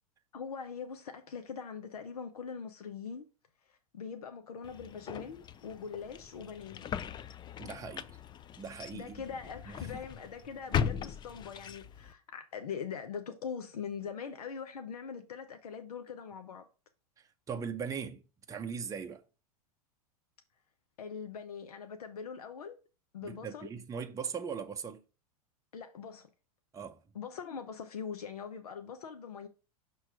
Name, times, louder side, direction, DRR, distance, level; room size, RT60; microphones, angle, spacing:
voice 1, 0.3-3.3 3.7-6.9 8.9-16.6 21.0-22.8 23.1-23.7 25.7-26.3 27.1-29.5, left 6 dB, 80° left, 0.7 m, -42 dB
sound 1, 4.6-12.1, left 8 dB, 25° left, 0.4 m, -39 dB
voice 2, 7.6-8.2 8.6-9.2 9.7-10.0 17.5-18.2 18.5-19.2 23.2-25.0 26.7-27.0, right 6 dB, 15° right, 0.7 m, -39 dB
5.9 x 3.1 x 5.6 m
hypercardioid pair, 100°, 19 cm